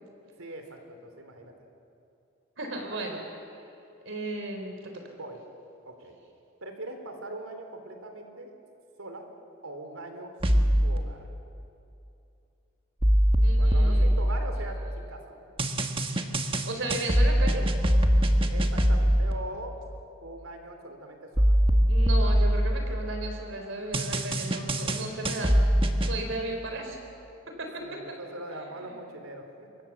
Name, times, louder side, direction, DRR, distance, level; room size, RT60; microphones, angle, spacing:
voice 1, 0.4-1.5 5.2-5.4 5.9-6.2 6.6-8.5 9.0-9.3 9.6-11.3 13.6-15.2 18.5-19.8 20.2-21.6 27.8-29.7, right 1 dB, 85° right, 5 dB, 3.6 m, -41 dB
voice 2, 2.6-3.2 4.1-4.9 13.4-14.1 16.6-17.7 21.9-25.6 26.0-27.0 27.6-28.2 28.7-28.9, right 2 dB, 65° right, 3 dB, 3.8 m, -35 dB
sound 1, 10.4-11.0 13.0-14.9 15.6-19.3 21.4-23.2 23.9-26.2, equal, 25° right, 1.5 m, -23 dB
27.0 x 23.5 x 7.3 m, 2.7 s
head